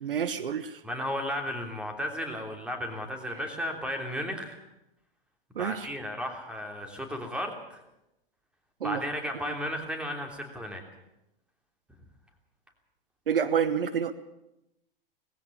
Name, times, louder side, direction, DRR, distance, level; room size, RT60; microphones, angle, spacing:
voice 1, 0.0-0.8 5.5-5.9 8.8-9.0 9.5-9.6 13.3-14.1, right 7 dB, 70° right, 12 dB, 1.3 m, -28 dB
voice 2, 0.8-4.6 5.6-7.8 8.8-10.8, equal, 5° right, 3 dB, 3.3 m, -34 dB
19.0 x 16.0 x 8.6 m, 0.89 s
figure-of-eight pair, 105°, 29 cm